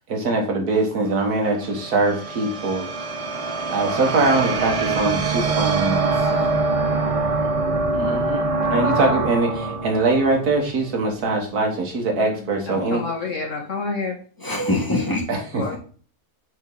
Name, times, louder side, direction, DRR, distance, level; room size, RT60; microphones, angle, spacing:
voice 1, 0.1-2.9 3.3-3.4 3.7-6.0 7.9-13.0 15.3-15.6, right 2 dB, 85° right, 2 dB, 2.2 m, -22 dB
sound 1, 1.0-11.4, right 3 dB, 35° right, 0.6 m, -24 dB
voice 2, 6.2-6.5 14.4-15.3, left 1 dB, 15° left, -1 dB, 1.8 m, -24 dB
voice 3, 12.1-14.2 15.5-15.8, left 4 dB, 55° left, 1 dB, 2.1 m, -29 dB
9.0 x 4.5 x 4.0 m, 0.41 s
omnidirectional pair, 1.6 m